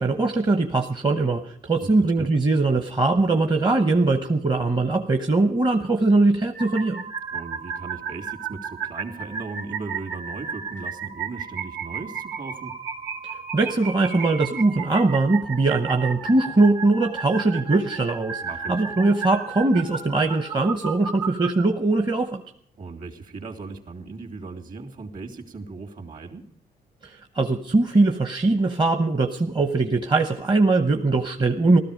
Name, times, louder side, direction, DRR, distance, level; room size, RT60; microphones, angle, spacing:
voice 1, 0.0-7.0 13.5-18.4 18.7-22.4 27.0-31.8, right 3 dB, 30° right, 6 dB, 1.0 m, -21 dB
voice 2, 1.8-2.3 7.3-12.8 18.4-18.8 22.8-26.4, right 4 dB, 55° right, 3 dB, 2.8 m, -37 dB
sound 1, 6.5-21.5, right 6 dB, 85° right, 2.6 m, -34 dB
16.5 x 13.5 x 5.2 m, 0.64 s
cardioid pair, 100°, 16 cm